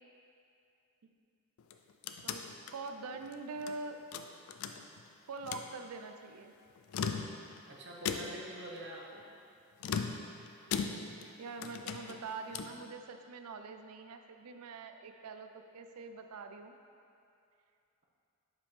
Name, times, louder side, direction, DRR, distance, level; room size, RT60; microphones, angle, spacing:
sound 1, 1.6-3.8 4.1-5.1 5.4-5.7 6.8-7.6 8.0-8.6 9.8-11.3 11.6-12.8, left 6 dB, 75° left, 0.4 m, -39 dB
voice 1, 2.2-4.0 5.3-6.6 11.4-16.8, right 4 dB, 85° right, 7 dB, 0.4 m, -44 dB
voice 2, 7.7-9.3 11.6-11.7, right 1 dB, 50° right, -2 dB, 0.9 m, -46 dB
7.4 x 5.2 x 3.2 m, 2.6 s
head